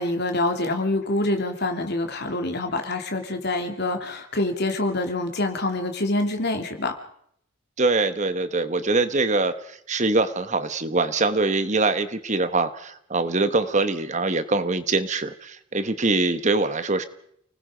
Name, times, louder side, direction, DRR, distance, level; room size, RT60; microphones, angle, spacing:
voice 1, 0.0-6.9, left 2 dB, 55° left, 4 dB, 3.0 m, -26 dB
voice 2, 7.8-17.0, right 3 dB, 35° right, 11 dB, 1.2 m, -23 dB
30.0 x 19.5 x 5.1 m, 0.69 s
head